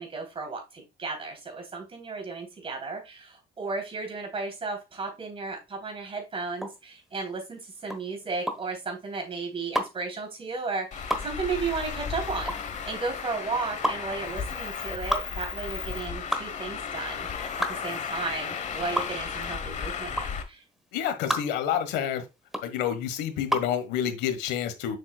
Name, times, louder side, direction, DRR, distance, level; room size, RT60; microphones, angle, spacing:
voice 1, 0.0-20.6, right 4 dB, 35° right, 3.4 m, -34 dB
sound 1, 6.5-23.8, equal, ahead, 1.2 m, -33 dB
Traffic noise roadway noise, 10.9-20.4, left 6 dB, 45° left, 1.2 m, -34 dB
voice 2, 20.9-22.2 22.6-25.0, left 9 dB, 90° left, 1.4 m, -28 dB
7.3 x 6.1 x 2.3 m
cardioid pair, 110°, 17 cm